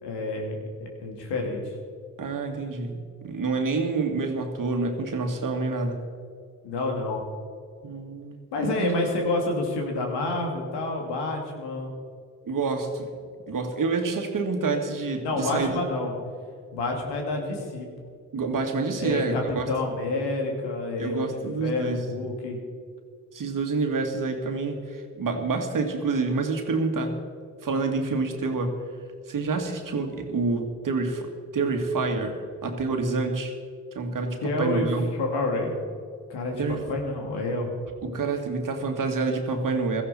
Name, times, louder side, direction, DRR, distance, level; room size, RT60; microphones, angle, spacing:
voice 1, 0.0-1.7 6.6-7.2 8.5-11.9 15.2-16.1 16.7-17.9 19.0-22.6 34.4-34.9 35.1-35.7 36.3-36.6 36.9-37.7, left 2 dB, 70° left, 2 dB, 2.7 m, -28 dB
voice 2, 2.2-6.1 7.8-8.9 12.4-15.8 18.3-19.6 21.0-22.0 23.3-27.1 27.6-28.8 29.3-33.5 34.0-35.1 36.6-36.8 38.0-40.0, right 3 dB, 50° right, 4 dB, 2.1 m, -28 dB
16.5 x 14.0 x 4.3 m, 2.2 s
hypercardioid pair, 45°, 42 cm